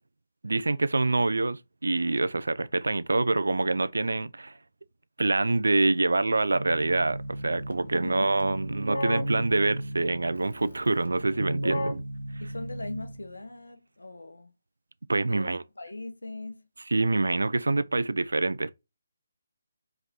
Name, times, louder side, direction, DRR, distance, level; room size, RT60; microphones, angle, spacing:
voice 1, 0.4-4.5 5.2-11.9 15.1-15.6 16.9-18.7, right 2 dB, 65° right, 0.3 m, -26 dB
Keyboard (musical), 6.5-13.4, equal, 90° right, 1.2 m, -35 dB
voice 2, 7.9-8.3 12.4-14.5 15.2-16.7, left 2 dB, 70° left, 0.8 m, -40 dB
4.8 x 3.1 x 2.9 m
figure-of-eight pair, 145°, 0 cm